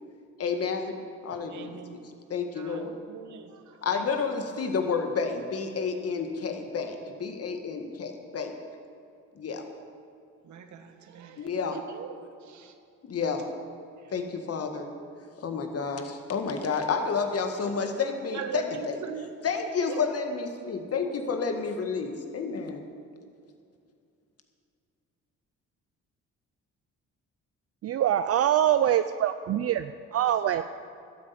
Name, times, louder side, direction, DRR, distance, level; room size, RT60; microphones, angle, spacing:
voice 1, 0.4-1.0 1.2-2.9 3.8-8.6 9.4-9.7 11.4-11.8 13.0-13.5 14.1-14.9 15.4-19.0 19.4-22.9, left 5 dB, 50° left, 5 dB, 1.8 m, -30 dB
voice 2, 1.5-2.0 2.6-4.1 10.4-12.1 12.4-12.7 18.3-20.0 30.3-30.6, right 7 dB, 70° right, 7 dB, 1.4 m, -41 dB
voice 3, 27.8-30.6, right 11 dB, 55° right, 11 dB, 0.5 m, -24 dB
12.5 x 8.6 x 8.6 m, 2.5 s
cardioid pair, 90°, 30 cm